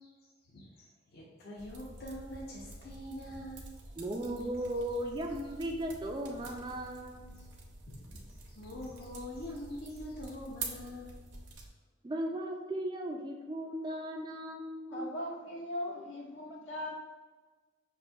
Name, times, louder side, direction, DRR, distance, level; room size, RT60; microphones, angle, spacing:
voice 1, 0.0-3.9 4.4-4.5 6.4-6.5 7.3-7.5 7.9-11.2, left 1 dB, 55° left, -3 dB, 0.6 m, -45 dB
sound 1, 1.6-11.7, right 3 dB, 60° right, 0.6 m, -48 dB
voice 2, 4.0-7.3 12.0-15.1, right 1 dB, 20° right, 1 dB, 0.3 m, -36 dB
voice 3, 14.9-16.9, left 1 dB, 80° left, -6 dB, 1.3 m, -39 dB
5.8 x 2.5 x 2.3 m, 1.3 s
head